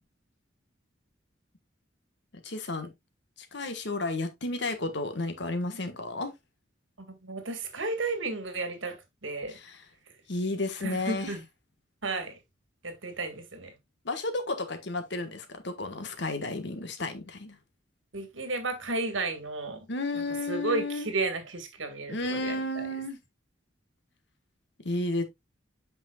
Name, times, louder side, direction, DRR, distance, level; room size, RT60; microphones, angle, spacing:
voice 1, 2.4-2.9 3.4-6.3 9.5-9.8 10.3-11.3 14.0-17.6 19.9-21.1 22.1-23.2 24.8-25.2, left 2 dB, 65° left, 1.4 m, -32 dB
voice 2, 7.0-9.6 10.8-11.4 12.0-12.4 12.8-13.7 18.1-19.9 20.1-22.9, right 3 dB, 85° right, 1.8 m, -33 dB
8.4 x 5.9 x 2.3 m
head